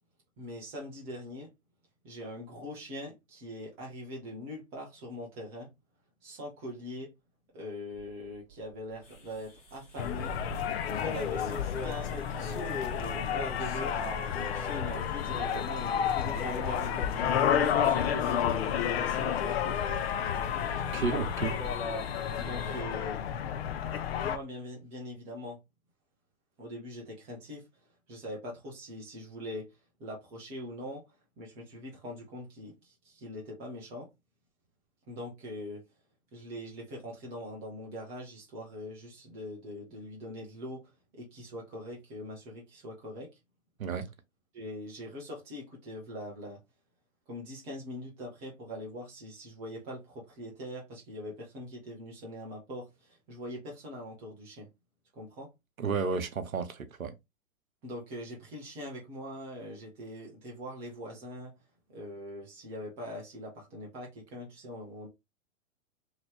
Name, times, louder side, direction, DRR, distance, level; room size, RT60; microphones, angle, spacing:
voice 1, 0.4-1.5 2.0-5.7 6.2-7.1 7.5-10.3 10.8-13.9 14.3-19.8 22.4-23.2 24.2-25.6 26.6-27.6 28.1-31.0 31.4-34.1 35.1-35.8 36.3-43.3 44.5-46.6 47.3-54.7 55.1-55.5 57.8-61.5 61.9-65.1, left 1 dB, 5° right, 0.3 m, -42 dB
Engine starting, 7.9-22.0, right 9 dB, 25° right, 0.8 m, -48 dB
Madagascar Forest, 9.0-22.8, left 2 dB, 20° left, 0.8 m, -42 dB
sound 1, 10.0-24.4, left 9 dB, 50° left, 0.5 m, -31 dB
voice 2, 20.7-21.6 43.8-44.1 55.8-57.1, right 5 dB, 80° right, 0.8 m, -32 dB
3.0 x 2.6 x 3.1 m
figure-of-eight pair, 105°, 41 cm